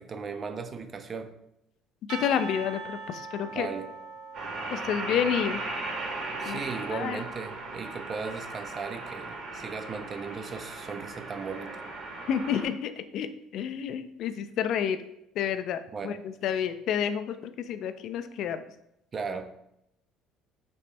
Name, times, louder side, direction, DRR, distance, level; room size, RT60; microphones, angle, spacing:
voice 1, 0.0-1.3 3.5-3.9 6.4-11.8 15.9-16.2 19.1-19.5, right 5 dB, 35° right, 8 dB, 0.4 m, -37 dB
voice 2, 2.1-3.7 4.7-5.6 6.4-6.6 6.9-7.2 12.3-13.3 13.5-15.0 15.4-16.2 16.4-18.6, left 8 dB, 60° left, 10 dB, 0.3 m, -29 dB
Percussion / Church bell, 2.1-6.9, right 4 dB, 80° right, 0.7 m, -43 dB
sound 1, 4.3-12.6, right 2 dB, 55° right, 1.3 m, -37 dB
4.2 x 3.0 x 3.3 m, 0.79 s
cardioid pair, 115°, 0 cm